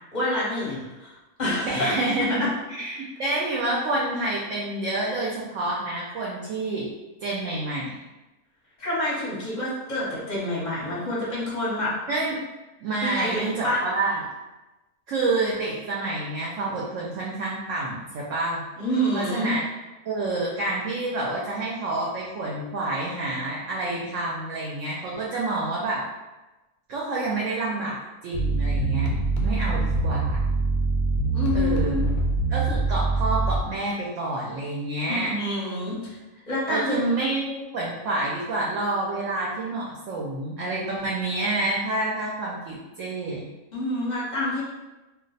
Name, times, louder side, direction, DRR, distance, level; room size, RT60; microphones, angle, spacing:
voice 1, 0.1-1.9 8.8-11.9 13.0-13.8 18.8-19.5 31.3-32.1 35.1-36.0 36.5-37.0 43.7-44.6, left 1 dB, 40° left, -6 dB, 0.7 m, -27 dB
voice 2, 1.6-2.5 2.8-6.9 7.2-7.9 12.1-12.4 12.8-14.2 15.1-18.6 19.1-19.6 20.1-26.0 26.9-28.0 28.2-29.1 29.4-30.4 31.5-32.1 32.5-35.3 36.7-43.4, right 2 dB, 65° right, -4 dB, 0.8 m, -28 dB
sound 1, 28.3-33.6, right 3 dB, 85° left, 1.1 m, -24 dB
2.5 x 2.1 x 3.9 m, 1.1 s
omnidirectional pair, 1.6 m